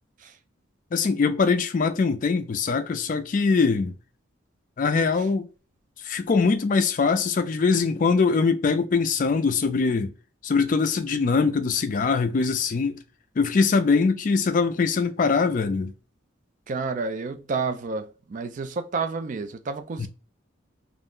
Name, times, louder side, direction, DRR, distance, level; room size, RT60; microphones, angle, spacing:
voice 1, 0.9-3.9 4.8-5.5 6.0-10.1 10.4-13.0 13.4-15.9, left 4 dB, 40° left, 0.3 m, -22 dB
voice 2, 16.7-20.1, right 4 dB, 40° right, 0.3 m, -30 dB
2.4 x 2.1 x 3.6 m
head